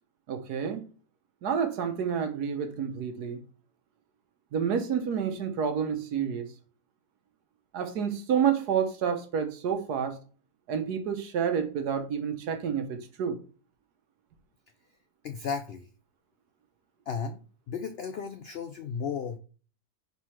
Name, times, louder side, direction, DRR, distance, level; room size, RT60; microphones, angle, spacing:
voice 1, 0.3-0.9 1.4-3.4 4.5-6.5 7.7-10.2 10.7-13.4, right 7 dB, 85° right, 1.5 m, -29 dB
voice 2, 15.2-15.9 17.1-17.4 17.7-19.4, left 6 dB, 80° left, 0.5 m, -34 dB
4.7 x 3.9 x 5.7 m
omnidirectional pair, 1.7 m